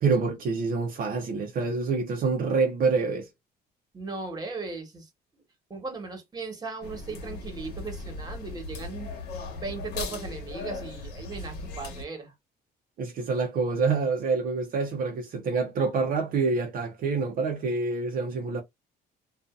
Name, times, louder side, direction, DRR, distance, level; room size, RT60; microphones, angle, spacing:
voice 1, 0.0-3.3 13.0-18.6, right 4 dB, 60° right, 0.7 m, -27 dB
voice 2, 3.9-5.4 5.7-9.1 9.5-12.3, right 3 dB, 25° right, 1.3 m, -37 dB
sound 1, 6.8-12.0, left 3 dB, 75° left, 1.0 m, -37 dB
2.6 x 2.4 x 2.4 m
cardioid pair, 110°, 17 cm